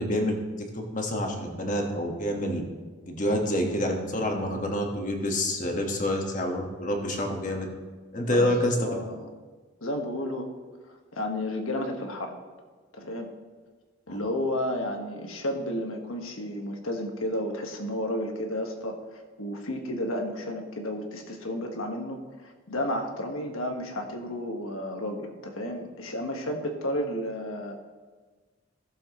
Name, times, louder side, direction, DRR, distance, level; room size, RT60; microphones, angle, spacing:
voice 1, 0.0-2.6 3.1-7.7 8.1-8.9 14.1-14.2, left 1 dB, 40° left, 2 dB, 1.4 m, -27 dB
voice 2, 8.2-9.3 9.8-10.5 11.1-12.3 12.9-13.3 14.1-27.7, left 1 dB, 90° left, 3 dB, 1.5 m, -32 dB
16.5 x 7.1 x 3.0 m, 1.4 s
head